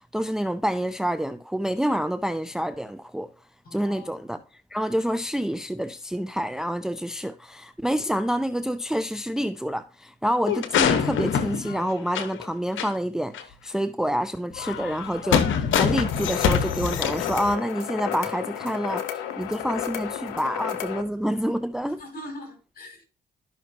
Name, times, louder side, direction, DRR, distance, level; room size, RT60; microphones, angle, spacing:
voice 1, 0.1-3.3 3.7-4.4 4.7-22.0, equal, 5° right, 0.6 m, -28 dB
voice 2, 3.6-4.2 22.0-23.0, equal, 45° left, 4.6 m, -41 dB
sound 1, 10.5-12.4 12.8-12.9 13.3-13.4 14.5-17.5, left 7 dB, 65° left, 1.1 m, -25 dB
sound 2, 15.9-21.0, left 10 dB, 90° left, 0.8 m, -33 dB
12.5 x 5.8 x 2.7 m
hypercardioid pair, 50°, 21 cm